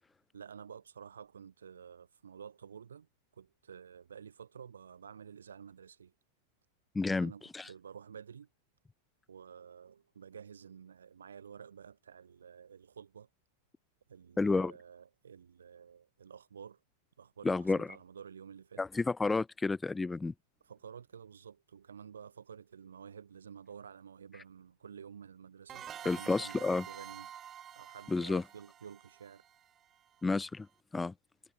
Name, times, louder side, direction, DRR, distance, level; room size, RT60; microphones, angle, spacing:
voice 1, 0.3-6.1 7.1-8.5 9.3-13.3 14.1-16.8 17.2-18.8 20.6-27.3 27.7-29.4, right 7 dB, 70° right, 3.2 m, -51 dB
voice 2, 6.9-7.7 14.4-14.7 17.4-17.9 18.8-20.3 26.0-26.8 28.1-28.4 30.2-30.7 30.9-31.1, left 3 dB, 10° left, 1.3 m, -31 dB
sound 1, 25.7-30.2, right 10 dB, 25° right, 3.8 m, -48 dB
figure-of-eight pair, 90°, 0 cm